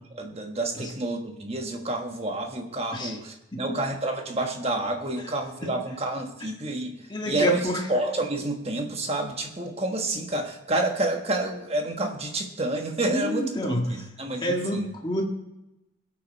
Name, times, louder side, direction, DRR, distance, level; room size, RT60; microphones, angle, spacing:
voice 1, 0.1-14.9, right 2 dB, 30° right, 4 dB, 1.4 m, -29 dB
voice 2, 7.1-7.8 13.1-14.1 14.4-15.2, equal, 20° left, 0 dB, 1.9 m, -28 dB
21.0 x 8.7 x 4.1 m, 0.94 s
head